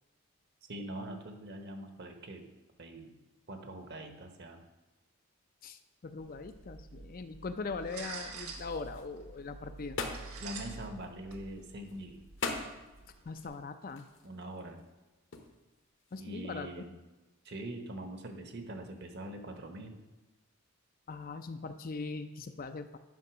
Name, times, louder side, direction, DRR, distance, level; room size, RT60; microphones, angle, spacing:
voice 1, 0.7-2.5 2.8-3.1 3.5-4.6 10.4-12.2 14.2-14.8 16.2-16.9 17.4-20.0, right 1 dB, 50° right, 5 dB, 1.0 m, -43 dB
voice 2, 5.6-10.0 13.2-14.1 16.1-16.7 21.1-23.0, left 4 dB, 40° left, 9 dB, 0.4 m, -41 dB
sound 1, 6.2-13.5, right 4 dB, 90° right, 1.4 m, -48 dB
sound 2, 8.6-16.4, left 3 dB, 60° left, 1.0 m, -43 dB
9.5 x 5.4 x 6.0 m, 1.1 s
head